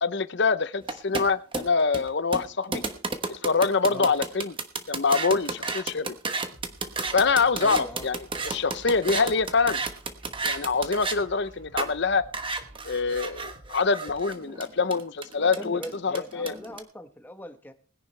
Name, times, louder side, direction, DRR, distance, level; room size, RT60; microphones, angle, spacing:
voice 1, 0.0-2.8 3.3-4.5 4.9-6.2 7.1-8.2 8.4-9.8 10.4-12.3 12.8-16.5, left 4 dB, 55° left, 15 dB, 0.7 m, -25 dB
sound 1, 0.8-11.2 11.8-11.9 12.3-16.8, right 3 dB, 25° right, 1.1 m, -32 dB
sound 2, 6.5-14.0, right 1 dB, 60° right, 2.7 m, -50 dB
voice 2, 7.6-8.1 15.6-17.7, equal, 10° left, 7 dB, 1.1 m, -40 dB
20.0 x 10.5 x 3.3 m, 0.40 s
head